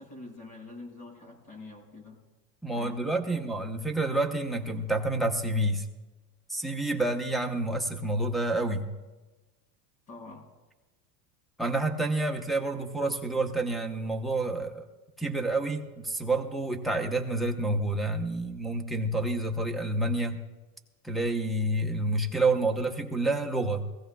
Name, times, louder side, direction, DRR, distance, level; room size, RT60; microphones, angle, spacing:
voice 1, 0.0-2.2 2.8-3.2 10.1-10.5, left 3 dB, 45° left, 0 dB, 5.9 m, -45 dB
voice 2, 2.6-5.9 6.5-8.9 11.6-14.8 15.2-20.4 21.0-23.8, right 2 dB, ahead, 6 dB, 0.9 m, -28 dB
22.0 x 16.0 x 2.3 m, 1.2 s
supercardioid pair, 130°, 48 cm